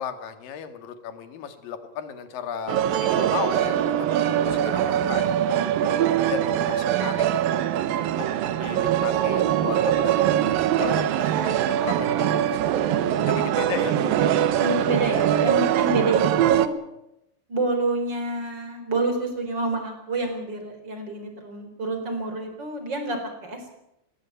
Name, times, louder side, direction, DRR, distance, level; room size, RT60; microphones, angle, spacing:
voice 1, 0.0-5.3 6.3-7.2 7.9-8.3 8.6-12.7 13.3-14.0, left 7 dB, 80° left, 9 dB, 3.5 m, -35 dB
sound 1, 2.7-16.7, right 11 dB, 90° right, 2.8 m, -22 dB
voice 2, 14.6-16.7 17.5-23.7, right 2 dB, 30° right, 5 dB, 4.7 m, -28 dB
20.0 x 15.5 x 8.9 m, 0.86 s
omnidirectional pair, 4.0 m